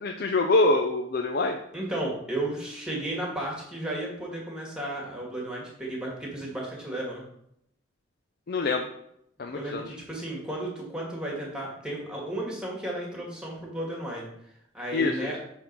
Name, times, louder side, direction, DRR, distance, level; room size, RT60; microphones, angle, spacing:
voice 1, 0.0-1.6 8.5-8.9 9.4-9.8 14.9-15.3, left 2 dB, 55° left, 4 dB, 0.5 m, -25 dB
voice 2, 1.7-7.2 9.5-15.4, right 1 dB, 5° right, -3 dB, 1.9 m, -34 dB
7.0 x 3.7 x 5.4 m, 0.75 s
head